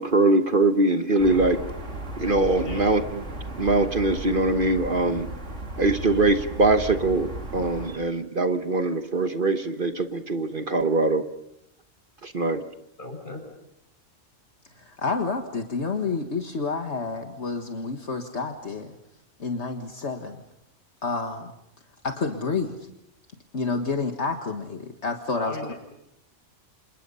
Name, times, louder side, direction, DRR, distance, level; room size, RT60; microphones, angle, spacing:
voice 1, 0.0-1.6 2.2-3.2 3.6-5.2 5.8-11.2 12.2-12.6, right 2 dB, 45° right, 8 dB, 1.4 m, -22 dB
sound 1, 1.2-8.0, right 2 dB, 75° right, 3.3 m, -35 dB
voice 2, 2.6-2.9 13.0-13.4 25.3-25.8, left 2 dB, 40° left, 3 dB, 7.3 m, -36 dB
voice 3, 14.8-18.9 19.4-20.4 21.0-21.5 22.0-22.8 23.5-25.7, left 4 dB, 65° left, 4 dB, 2.0 m, -29 dB
29.5 x 28.0 x 5.6 m, 0.80 s
omnidirectional pair, 1.3 m